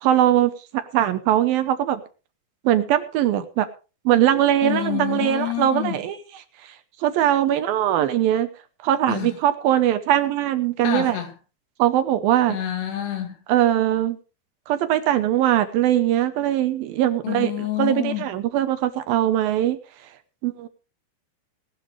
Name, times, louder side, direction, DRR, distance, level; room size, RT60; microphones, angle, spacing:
voice 1, 0.0-2.0 2.6-3.7 4.1-6.2 7.0-8.5 8.8-11.2 11.8-12.6 13.5-14.2 14.7-17.5 17.8-19.8 20.4-20.7, right 12 dB, 75° right, 2.4 m, -21 dB
voice 2, 4.6-6.0 9.1-9.3 10.8-11.3 12.5-13.4 17.2-18.3, left 13 dB, 85° left, 4.5 m, -27 dB
19.0 x 11.5 x 3.3 m
omnidirectional pair, 4.7 m